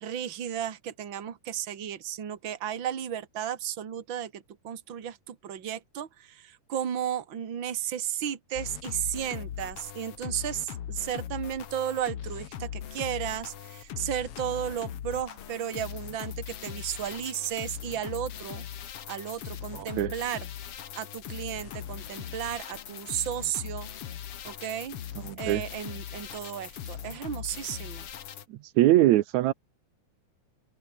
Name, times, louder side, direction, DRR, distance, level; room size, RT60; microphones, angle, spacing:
voice 1, 0.0-18.6 19.1-20.5 20.9-23.9 24.4-25.0 25.4-28.1, right 10 dB, 40° right, 2.5 m, -34 dB
sound 1, 8.5-28.4, left 9 dB, 55° left, 2.1 m, -40 dB
voice 2, 19.7-20.1 25.2-25.6 28.5-29.5, right 15 dB, 70° right, 2.0 m, -23 dB
omnidirectional pair, 3.7 m